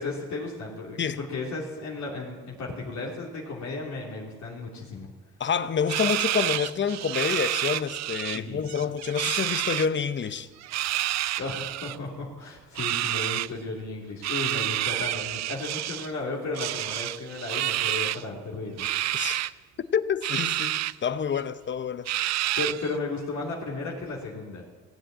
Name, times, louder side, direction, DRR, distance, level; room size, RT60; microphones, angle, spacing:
voice 1, 0.0-5.1 8.3-8.7 11.4-18.9 22.6-24.6, left 3 dB, 70° left, 2.9 m, -34 dB
voice 2, 5.4-10.5 19.1-19.5 19.9-22.1, left 7 dB, 40° left, 0.8 m, -28 dB
sound 1, 5.9-8.4 8.7-9.9 10.6-12.0 12.7-13.5 14.2-16.1 16.5-18.2 18.8-19.5 20.2-20.9 21.3-21.4 22.1-22.9, right 14 dB, 60° right, 0.4 m, -29 dB
18.5 x 7.9 x 8.8 m
cardioid pair, 90°, 30 cm